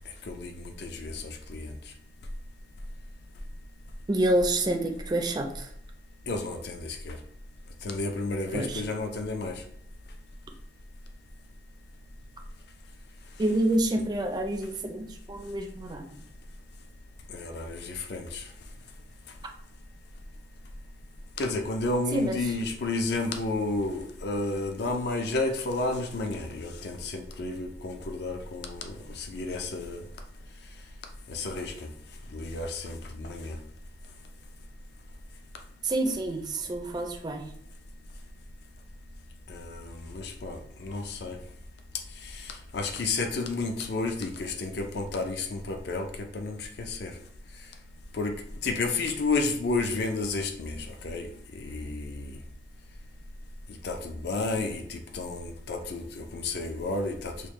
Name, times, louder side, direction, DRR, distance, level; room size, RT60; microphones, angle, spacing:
voice 1, 0.3-1.7 6.3-7.2 7.8-9.6 17.3-18.5 21.4-30.0 31.3-31.9 32.3-33.6 39.5-41.4 42.2-46.1 46.3-47.1 48.1-48.3 48.6-52.4 53.8-57.3, left 3 dB, 60° left, 4 dB, 0.4 m, -32 dB
voice 2, 4.1-5.7 8.5-8.8 13.4-16.2 22.1-22.4 35.8-37.4, right 1 dB, 20° right, 3 dB, 0.4 m, -28 dB
4.7 x 2.1 x 3.1 m, 0.68 s
head